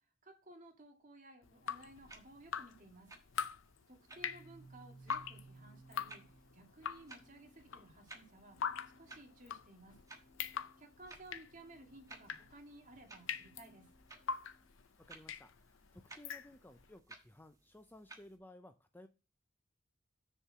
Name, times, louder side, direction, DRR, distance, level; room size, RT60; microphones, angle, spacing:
voice 1, 0.2-3.1 3.9-6.2 6.5-8.6 9.0-10.0 10.8-13.9, right 1 dB, 45° right, 2 dB, 2.1 m, -57 dB
Drip, 1.4-16.9, left 7 dB, 80° left, 0.6 m, -44 dB
sound 1, 1.7-18.4, right 2 dB, 20° right, 1.3 m, -60 dB
Organ, 4.0-14.8, right 2 dB, 55° left, 2.2 m, -63 dB
voice 2, 15.0-19.1, left 1 dB, 10° left, 8 dB, 0.5 m, -57 dB
6.7 x 4.6 x 6.0 m, 0.31 s
head